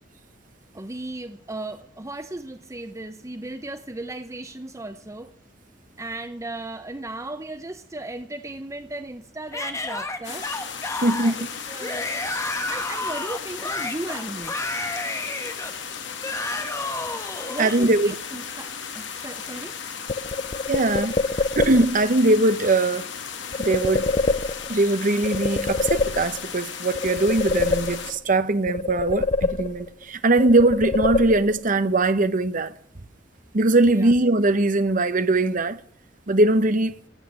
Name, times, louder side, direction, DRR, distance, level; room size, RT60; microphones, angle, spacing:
voice 1, 0.7-5.3 6.0-10.5 10.7-10.9 11.7-12.3 12.5-14.6 17.5-19.8 33.9-34.1, right 2 dB, 15° right, 0.7 m, -36 dB
Yell / Screaming, 9.5-17.8, left 2 dB, 15° left, 1.7 m, -31 dB
sound 1, 10.2-28.1, left 7 dB, 75° left, 2.1 m, -36 dB
voice 2, 11.0-11.5 17.6-18.1 20.7-21.1 21.6-23.1 23.6-24.1 24.7-32.7 33.5-35.8 36.3-36.9, right 2 dB, 45° right, 0.9 m, -21 dB
sound 2, 20.1-22.1 23.5-24.9 25.2-26.6 26.9-28.3 28.7-30.0 30.4-31.7, left 3 dB, 35° left, 0.5 m, -26 dB
16.0 x 8.4 x 9.0 m
head